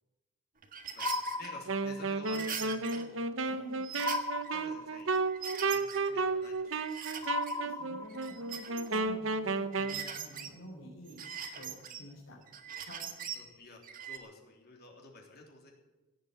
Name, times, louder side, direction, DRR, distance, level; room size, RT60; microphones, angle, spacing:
sound 1, 0.6-1.5 2.2-3.1 3.4-3.5 3.8-4.6 5.1-6.1 6.4-7.6 8.0-9.1 9.7-10.5 11.1-12.0 12.5-13.4 13.8-14.2, right 7 dB, 45° right, 1.6 m, -42 dB
voice 1, 0.9-3.6 4.4-5.1 5.7-7.2 13.3-15.7, left 2 dB, 50° left, 0 dB, 3.5 m, -52 dB
sound 2, 1.0-2.2 4.0-5.2 7.2-8.5, left 3 dB, 20° left, 0.9 m, -36 dB
Wind instrument woodwind instrument, 1.7-10.0, right 3 dB, 70° right, 0.9 m, -33 dB
voice 2, 3.5-3.8 7.2-12.4 12.8-13.1, equal, 75° left, -4 dB, 4.2 m, -50 dB
16.5 x 8.3 x 8.7 m, 1.1 s
head